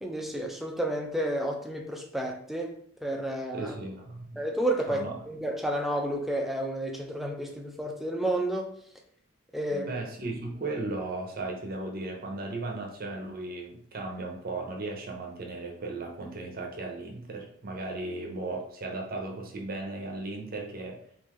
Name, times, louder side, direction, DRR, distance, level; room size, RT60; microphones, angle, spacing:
voice 1, 0.0-3.7 4.4-8.7 9.5-10.0, right 1 dB, ahead, 0.4 m, -31 dB
voice 2, 3.5-4.4 4.9-5.2 9.7-21.0, right 2 dB, 45° right, 0.6 m, -36 dB
3.6 x 2.6 x 3.0 m
head